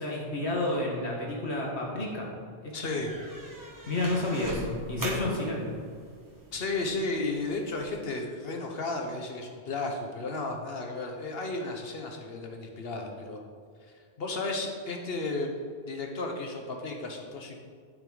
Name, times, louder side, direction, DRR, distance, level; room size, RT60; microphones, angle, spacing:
voice 1, 0.0-2.3 2.6-2.7 3.9-5.7, left 2 dB, 80° left, -2 dB, 2.0 m, -30 dB
voice 2, 2.7-3.1 6.5-13.4 14.2-15.5 15.8-17.6, left 3 dB, 65° left, 2 dB, 1.3 m, -33 dB
sound 1, 2.8-8.0, right 1 dB, 20° right, 1.4 m, -42 dB
9.2 x 7.8 x 4.0 m, 2.1 s
omnidirectional pair, 1.1 m